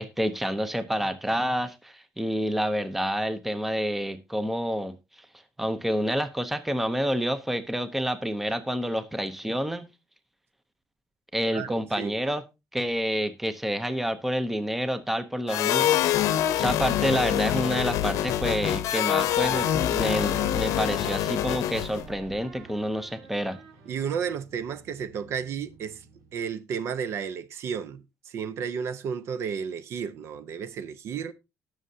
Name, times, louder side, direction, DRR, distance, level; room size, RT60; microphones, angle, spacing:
voice 1, 0.0-5.0 5.6-9.9 11.3-12.4 12.7-16.1 16.6-23.6, equal, 5° right, 0.7 m, -28 dB
voice 2, 11.5-12.2 23.9-31.3, right 7 dB, 50° right, 0.7 m, -33 dB
sound 1, 15.5-22.0, left 12 dB, 75° left, 0.8 m, -25 dB
sound 2, 19.2-26.5, right 5 dB, 70° right, 2.1 m, -45 dB
19.0 x 6.4 x 2.7 m
cardioid pair, 170°, 6 cm